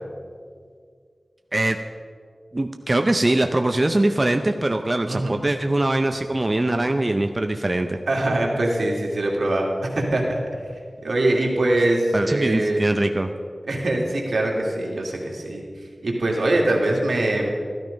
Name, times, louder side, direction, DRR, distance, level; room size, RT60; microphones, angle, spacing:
voice 1, 2.5-8.0 12.1-13.3, right 1 dB, 35° right, 6 dB, 0.6 m, -22 dB
voice 2, 5.1-5.4 8.1-10.4 11.0-12.8 13.7-15.6 16.0-17.5, right 1 dB, 85° right, -1 dB, 2.5 m, -22 dB
13.5 x 12.5 x 5.2 m, 2.1 s
wide cardioid pair, 70°, 0 cm